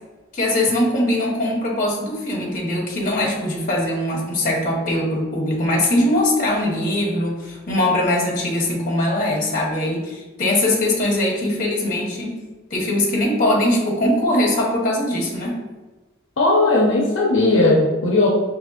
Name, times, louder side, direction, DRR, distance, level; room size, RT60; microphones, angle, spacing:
voice 1, 0.3-12.4 12.7-15.6, left 1 dB, 45° left, -2 dB, 1.1 m, -21 dB
voice 2, 16.4-18.3, left 2 dB, 75° left, -3 dB, 0.7 m, -17 dB
5.2 x 3.2 x 2.4 m, 1.2 s
head